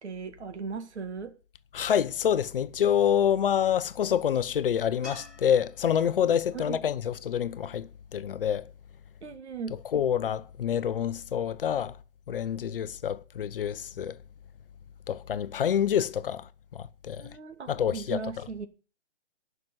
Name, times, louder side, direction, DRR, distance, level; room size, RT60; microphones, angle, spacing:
voice 1, 0.0-1.4 6.5-6.8 9.2-9.8 17.2-18.7, right 5 dB, 70° right, 1.9 m, -37 dB
voice 2, 1.7-8.6 9.9-11.9 12.3-14.2 15.1-16.4 16.7-17.3 17.7-18.2, left 9 dB, 50° left, 0.7 m, -27 dB
sound 1, 5.0-8.3 11.5-11.6, left 1 dB, ahead, 0.5 m, -51 dB
10.5 x 6.1 x 7.8 m
hypercardioid pair, 155°, 35 cm